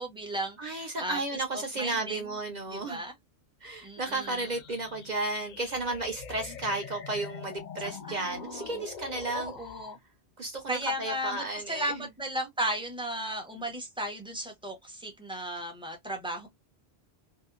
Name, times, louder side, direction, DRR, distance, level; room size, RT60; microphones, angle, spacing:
voice 1, 0.0-1.2 1.5-2.2 2.7-3.1 3.8-4.3 8.1-8.7 9.3-10.0 10.7-16.5, right 1 dB, 5° right, 0.7 m, -35 dB
voice 2, 0.6-3.0 3.6-9.5 10.4-12.1, right 2 dB, 50° right, 0.7 m, -33 dB
sound 1, 4.0-10.0, left 7 dB, 55° left, 0.6 m, -44 dB
2.8 x 2.2 x 2.2 m
omnidirectional pair, 1.1 m